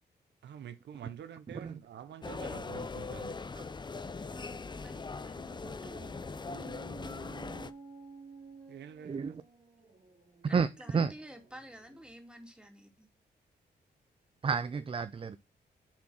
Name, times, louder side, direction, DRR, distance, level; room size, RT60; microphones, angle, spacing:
voice 1, 0.4-3.4 8.7-9.4, right 9 dB, 80° right, 0.6 m, -47 dB
sound 1, 2.2-7.7, left 4 dB, 25° left, 0.5 m, -40 dB
voice 2, 4.3-6.1 10.5-13.1, equal, 5° right, 2.2 m, -51 dB
Dog, 5.5-12.2, right 4 dB, 50° right, 3.3 m, -52 dB
voice 3, 9.0-9.4 10.4-10.7 10.9-11.1 14.4-15.4, right 5 dB, 30° right, 0.4 m, -30 dB
7.2 x 3.8 x 6.0 m
cardioid pair, 75°, 18 cm